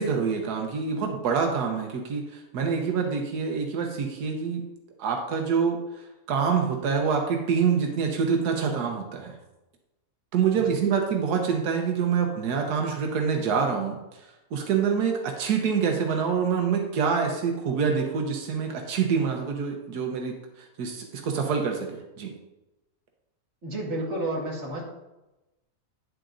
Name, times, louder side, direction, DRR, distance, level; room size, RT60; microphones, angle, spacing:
voice 1, 0.0-4.6 5.0-9.4 10.3-14.0 14.5-22.3, right 6 dB, 85° right, 2 dB, 1.4 m, -26 dB
voice 2, 23.6-24.8, right 1 dB, 45° right, -3 dB, 2.0 m, -31 dB
9.9 x 7.7 x 2.6 m, 1.0 s
omnidirectional pair, 1.6 m